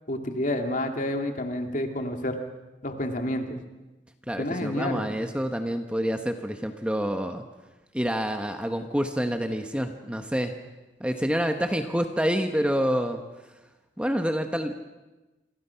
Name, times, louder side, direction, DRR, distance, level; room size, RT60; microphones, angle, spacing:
voice 1, 0.1-2.4 2.8-3.6 4.4-5.1, left 1 dB, 45° left, 4 dB, 2.4 m, -29 dB
voice 2, 4.3-7.4 7.9-10.5 11.0-13.2 14.0-14.7, equal, 5° right, 6 dB, 1.1 m, -27 dB
28.0 x 22.5 x 5.8 m, 1.1 s
head